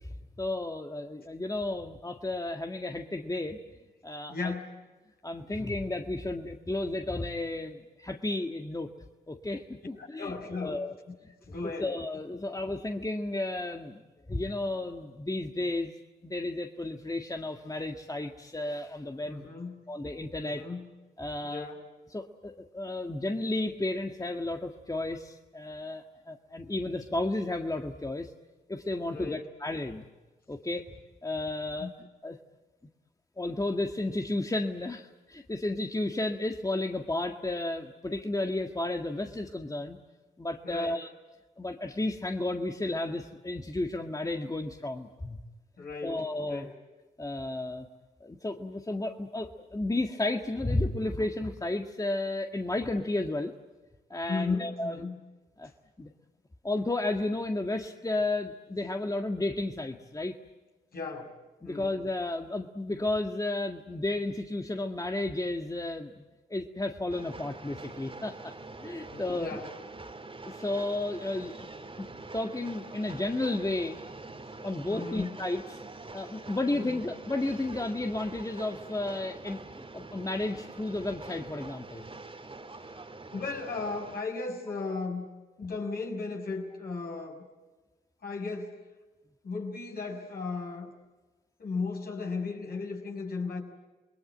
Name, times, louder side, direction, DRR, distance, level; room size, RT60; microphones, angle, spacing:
voice 1, 0.4-3.6 4.0-4.5 5.2-8.9 9.3-10.3 10.6-10.9 11.2-11.3 11.8-14.0 14.3-15.9 16.2-19.5 19.9-20.6 21.2-21.7 22.1-28.3 28.7-30.1 30.5-30.9 31.2-31.9 32.2-32.4 33.4-40.0 40.4-41.1 41.6-45.4 46.0-46.7 47.2-47.9 48.2-53.5 54.1-55.1 55.6-55.7 56.0-56.1 56.6-60.4 61.6-66.3 66.5-68.5 68.8-69.6 70.5-71.7 72.0-72.1 72.3-74.0 74.6-75.8 76.1-82.0, left 2 dB, 20° left, 4 dB, 1.8 m, -33 dB
voice 2, 4.3-4.7 10.0-10.8 11.5-11.9 19.2-19.8 20.4-20.9 21.4-21.8 29.0-29.4 31.8-31.9 40.6-41.0 45.8-46.7 54.3-55.2 60.9-61.3 61.6-61.9 69.1-69.7 74.9-75.4 76.7-77.0 82.8-82.9 83.3-85.3 85.6-87.5 88.2-88.8 89.4-90.9 91.6-93.6, left 4 dB, 60° left, 2 dB, 6.0 m, -36 dB
Train, 67.1-84.2, right 3 dB, 30° right, 2.5 m, -45 dB
28.0 x 21.0 x 9.0 m, 1.2 s
hypercardioid pair, 40°, 18 cm